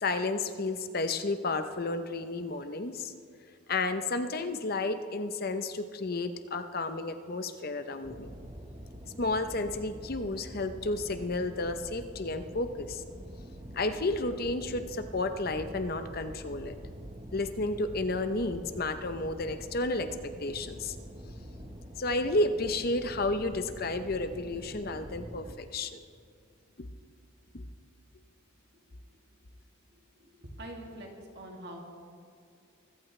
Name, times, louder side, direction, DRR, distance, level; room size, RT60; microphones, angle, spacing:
voice 1, 0.0-3.1 3.7-8.3 9.2-13.0 13.7-16.8 17.3-20.9 22.0-26.0 26.8-26.9 27.5-27.6, left 2 dB, 45° left, 9 dB, 0.8 m, -32 dB
sound 1, 8.0-25.5, equal, 30° right, 1.2 m, -45 dB
voice 2, 30.2-31.8, right 1 dB, 55° right, -1 dB, 2.4 m, -44 dB
23.5 x 15.0 x 3.3 m, 2.3 s
head